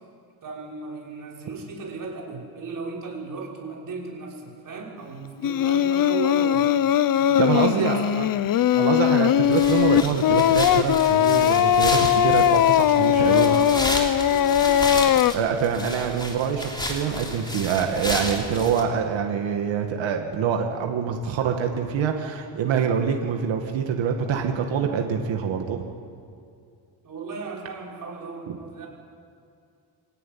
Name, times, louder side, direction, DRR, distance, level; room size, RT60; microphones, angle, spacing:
voice 1, 0.4-6.7 7.1-8.1 9.0-9.5 13.1-14.9 27.0-28.9, right 4 dB, 45° right, -2 dB, 6.0 m, -36 dB
Singing, 5.4-15.3, left 10 dB, 50° left, 0.6 m, -20 dB
voice 2, 7.4-8.3 8.7-13.5 15.3-25.8, right 7 dB, 80° right, 3 dB, 2.1 m, -25 dB
sound 1, 9.5-18.8, left 1 dB, 10° left, 3.3 m, -32 dB
25.0 x 17.5 x 9.5 m, 2.4 s
cardioid pair, 145°, 45 cm